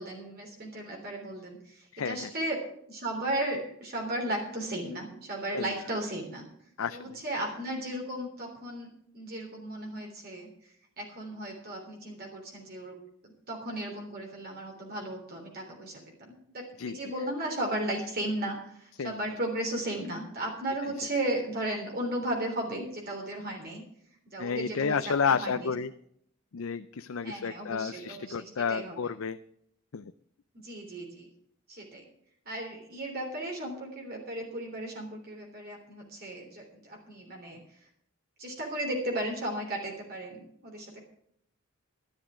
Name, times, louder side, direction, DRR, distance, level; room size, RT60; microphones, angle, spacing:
voice 1, 0.0-2.6 2.9-6.5 6.9-10.5 11.0-13.0 13.2-23.8 24.3-25.7 27.2-29.0 30.6-31.3 31.7-32.0 32.4-37.6 38.4-41.0, right 1 dB, 50° right, 0 dB, 3.4 m, -35 dB
voice 2, 1.9-2.3 5.5-5.7 6.8-7.2 16.8-16.9 19.0-19.2 24.4-25.9 26.5-29.4 29.9-30.1, left 6 dB, 70° left, 11 dB, 0.5 m, -31 dB
12.5 x 12.0 x 5.0 m, 0.68 s
head